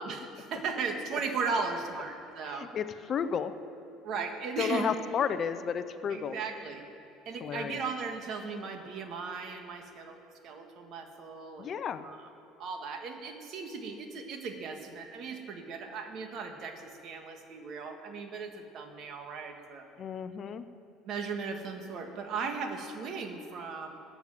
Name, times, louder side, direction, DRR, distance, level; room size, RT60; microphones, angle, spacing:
voice 1, 0.0-2.7 4.0-4.9 6.1-6.8 7.3-10.2 10.4-11.7 12.0-12.2 12.6-19.9 21.1-24.0, right 5 dB, 55° right, 5 dB, 1.8 m, -37 dB
voice 2, 2.4-3.5 4.6-6.4 7.4-7.8 11.6-12.1 20.0-20.7, left 7 dB, 40° left, 11 dB, 0.7 m, -32 dB
13.0 x 9.2 x 7.7 m, 2.9 s
cardioid pair, 120°, 0 cm